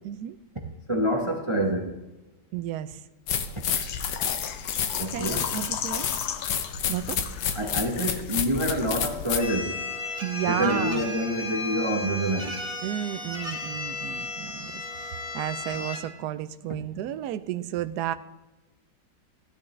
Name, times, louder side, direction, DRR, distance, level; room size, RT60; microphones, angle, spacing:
voice 1, 0.0-0.4 2.5-3.0 5.1-6.1 6.9-7.2 10.2-11.0 12.8-18.1, right 12 dB, 70° right, 1.0 m, -32 dB
voice 2, 0.9-2.0 5.0-5.4 7.5-9.8 10.4-12.6, equal, 25° right, 0.7 m, -27 dB
sound 1, 3.3-9.5, left 7 dB, 70° left, 1.5 m, -30 dB
Water / Liquid, 3.6-9.3 9.5-9.6 10.1-10.2, left 9 dB, 90° left, 1.5 m, -37 dB
sound 2, 9.4-16.0, left 2 dB, ahead, 3.0 m, -34 dB
15.5 x 11.0 x 3.2 m
omnidirectional pair, 2.0 m